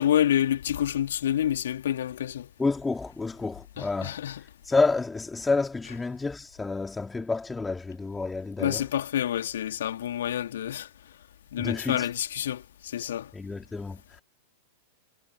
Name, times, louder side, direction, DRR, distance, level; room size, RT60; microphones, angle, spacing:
voice 1, 0.0-2.5 3.8-4.4 8.6-10.9 11.5-13.3, left 11 dB, 60° left, 3.2 m, -28 dB
voice 2, 2.6-4.2 4.6-8.8 11.6-12.1 13.3-14.2, left 3 dB, 10° left, 4.0 m, -29 dB
figure-of-eight pair, 95°, 0 cm